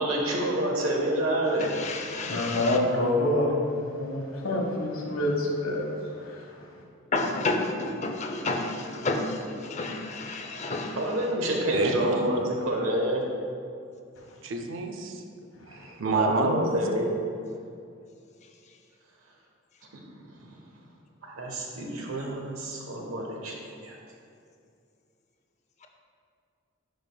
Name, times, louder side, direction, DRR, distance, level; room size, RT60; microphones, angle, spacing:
voice 1, 0.0-1.7 11.0-13.2 16.0-17.1 21.2-24.0, right 1 dB, 90° right, 0 dB, 1.2 m, -28 dB
voice 2, 1.6-2.8 7.1-11.0, left 2 dB, 35° left, 3 dB, 0.5 m, -30 dB
voice 3, 2.3-3.5 3.9-5.9, left 1 dB, 80° left, 0 dB, 1.1 m, -26 dB
voice 4, 11.7-12.3 14.4-15.2 15.7-16.8, right 3 dB, 65° right, 5 dB, 0.6 m, -28 dB
10.5 x 5.1 x 2.2 m, 2.4 s
head